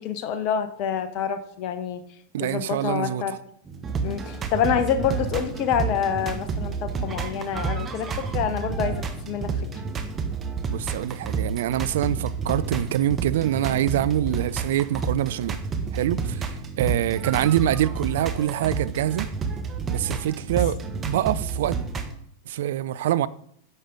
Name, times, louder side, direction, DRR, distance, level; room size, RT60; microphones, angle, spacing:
voice 1, 0.0-2.0 2.4-3.4 4.0-9.5, left 8 dB, 40° left, 1.1 m, -27 dB
voice 2, 2.3-3.4 10.7-15.6 15.9-16.5 16.8-19.3 19.9-21.8 22.5-23.3, right 12 dB, 55° right, 0.4 m, -25 dB
sound 1, 3.7-22.1, right 5 dB, 20° right, 1.2 m, -30 dB
11.0 x 7.7 x 3.9 m
figure-of-eight pair, 90°, 0 cm